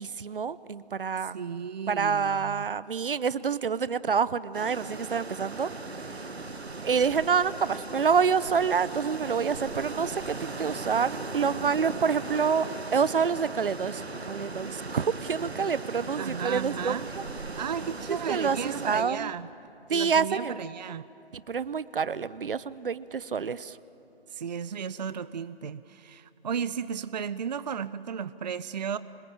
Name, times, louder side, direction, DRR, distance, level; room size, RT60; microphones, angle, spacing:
voice 1, 0.0-1.4 1.9-5.7 6.0-6.3 6.8-17.2 18.1-19.3 19.9-20.6 21.3-23.8, right 6 dB, 60° right, 18 dB, 0.8 m, -27 dB
voice 2, 1.2-2.7 16.2-17.1 17.5-19.5 19.9-21.0 24.3-29.0, right 7 dB, 45° right, 16 dB, 0.5 m, -34 dB
sound 1, 4.5-19.0, right 3 dB, 80° right, 1.6 m, -38 dB
25.0 x 21.0 x 9.0 m, 2.9 s
figure-of-eight pair, 145°, 31 cm